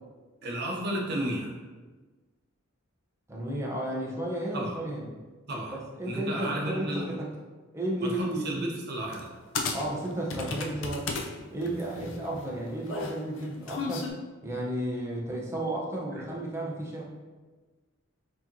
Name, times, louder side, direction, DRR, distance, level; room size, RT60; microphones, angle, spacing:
voice 1, 0.4-1.6 4.5-4.8 5.5-5.8 6.1-7.1 8.0-9.3, right 1 dB, 55° right, -1 dB, 0.7 m, -33 dB
voice 2, 3.3-5.1 5.7-7.3 7.7-8.7 9.7-11.1 11.5-14.1 14.4-17.0, right 1 dB, 15° right, -3 dB, 0.6 m, -33 dB
sound 1, 9.1-9.3 9.6-11.3 11.6-14.1, left 4 dB, 65° left, 0.4 m, -34 dB
4.7 x 2.9 x 2.7 m, 1.3 s
head